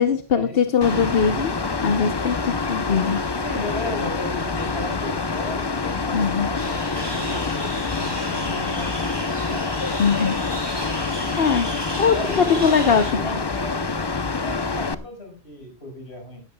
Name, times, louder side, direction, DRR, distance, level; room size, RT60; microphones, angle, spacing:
voice 1, 0.0-1.5 1.8-3.2 6.1-6.5 10.0-10.4 11.4-11.7 12.0-13.2, left 6 dB, 65° left, 8 dB, 1.1 m, -21 dB
Mechanical fan, 0.8-14.9, left 4 dB, 25° left, 0.7 m, -26 dB
voice 2, 3.4-7.7 8.0-9.7 12.1-14.1 14.4-16.4, left 2 dB, 80° left, 1 dB, 5.7 m, -35 dB
sound 1, 6.6-13.1, equal, 20° right, 4.3 m, -34 dB
18.5 x 13.5 x 2.3 m, 0.31 s
omnidirectional pair, 1.1 m